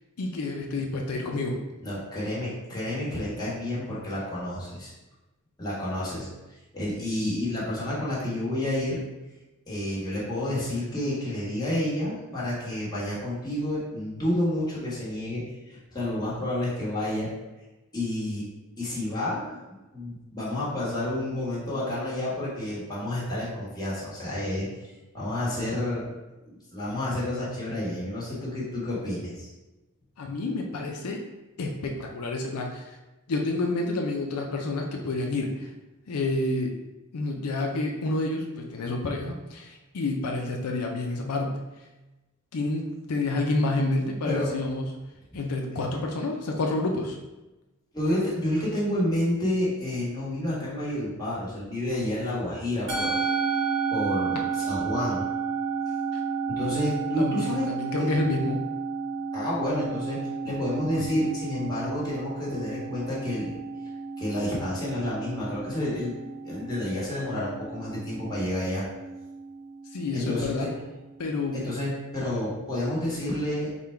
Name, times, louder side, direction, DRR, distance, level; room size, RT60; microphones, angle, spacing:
voice 1, 0.2-1.6 30.2-31.2 31.6-32.8 33.3-35.7 36.1-36.7 37.1-41.6 42.5-44.9 45.3-47.2 57.2-58.7 69.9-70.7 71.2-71.6, left 2 dB, 80° left, 1 dB, 0.5 m, -29 dB
voice 2, 1.8-4.9 5.6-9.0 9.7-17.3 17.9-18.4 18.8-19.6 19.9-26.0 26.5-29.5 44.2-44.6 47.9-53.2 53.9-55.2 56.5-57.7 58.0-58.1 59.3-63.6 64.2-66.2 66.4-68.8 70.1-70.7 71.5-73.7, left 1 dB, 20° left, -8 dB, 1.2 m, -30 dB
Musical instrument, 52.9-71.4, right 5 dB, 90° right, 1.0 m, -32 dB
3.7 x 2.2 x 4.3 m, 1.1 s
head